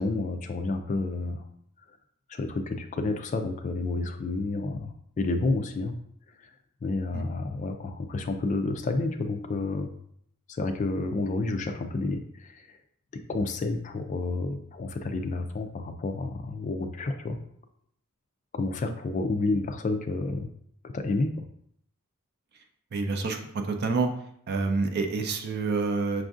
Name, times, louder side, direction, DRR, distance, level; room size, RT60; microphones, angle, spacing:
voice 1, 0.0-1.4 2.3-5.9 6.4-6.5 6.8-9.9 10.5-12.8 13.1-17.4 18.5-20.5 20.8-21.5, left 3 dB, 35° left, 7 dB, 0.3 m, -30 dB
voice 2, 22.9-23.4 23.7-24.1 24.5-26.2, right 4 dB, 45° right, 5 dB, 0.5 m, -27 dB
5.9 x 2.5 x 2.4 m, 0.68 s
head